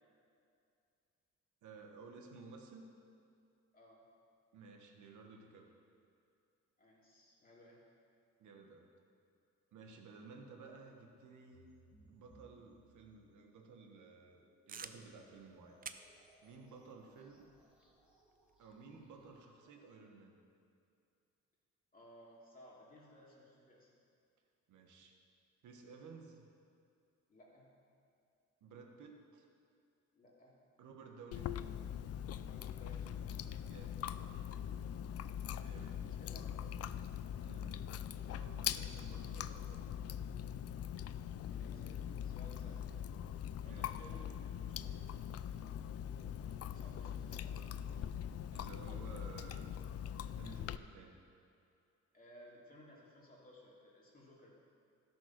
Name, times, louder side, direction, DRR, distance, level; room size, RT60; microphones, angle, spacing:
voice 1, 1.6-2.9 4.5-5.7 8.4-8.9 9.7-11.7 12.1-14.4 14.7-15.8 16.4-17.6 18.6-20.4 24.7-25.1 25.6-26.5 28.6-29.4 30.8-31.7 33.7-34.5 35.6-36.1 37.4-37.8 38.3-40.2 43.6-43.9 48.5-49.7 50.4-51.2, right 4 dB, 75° right, 3 dB, 1.4 m, -55 dB
voice 2, 3.7-4.0 6.8-7.8 21.9-23.9 27.3-27.7 30.1-30.6 32.5-33.5 33.9-34.2 36.2-37.0 41.5-42.9 43.6-45.2 46.1-47.8 52.1-54.6, left 1 dB, 30° left, -5 dB, 2.9 m, -59 dB
sound 1, 11.5-20.1, right 1 dB, 5° right, 2.0 m, -68 dB
sound 2, 14.7-19.5, right 6 dB, 30° right, 0.5 m, -55 dB
Chewing mastication, 31.3-50.8, left 9 dB, 55° left, 0.4 m, -42 dB
13.0 x 6.1 x 6.0 m, 2.5 s
cardioid pair, 90°, 30 cm